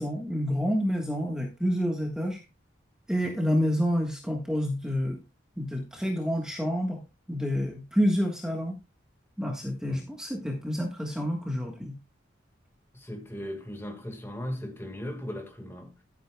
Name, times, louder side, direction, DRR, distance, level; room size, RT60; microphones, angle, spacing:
voice 1, 0.0-2.4 3.1-5.2 5.6-7.0 7.3-8.8 9.4-12.0, equal, 5° right, 1.4 m, -28 dB
voice 2, 12.9-16.0, equal, 15° left, 1.7 m, -38 dB
12.0 x 9.6 x 2.3 m
head